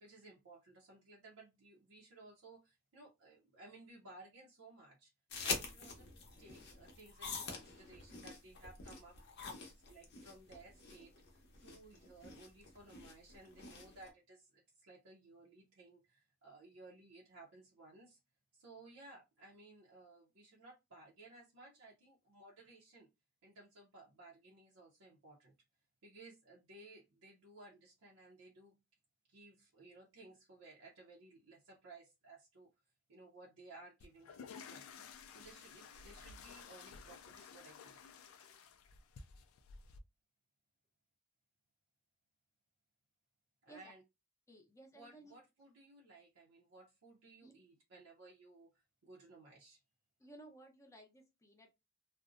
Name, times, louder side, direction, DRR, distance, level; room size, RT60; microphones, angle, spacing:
voice 1, 0.0-5.1 5.4-6.1 6.4-18.2 18.5-23.1 23.4-25.5 26.0-28.8 29.3-32.7 33.1-34.9 35.3-38.0 43.6-44.0 44.9-49.8, right 2 dB, 80° right, -4 dB, 0.6 m, -58 dB
sound 1, 5.3-14.1, left 4 dB, 55° left, 0.7 m, -46 dB
sound 2, 34.0-40.0, left 6 dB, 80° left, 0.3 m, -54 dB
voice 2, 44.5-45.3 47.4-47.5 50.2-51.7, right 1 dB, 15° left, 2 dB, 0.6 m, -57 dB
2.5 x 2.0 x 2.5 m, 0.24 s
head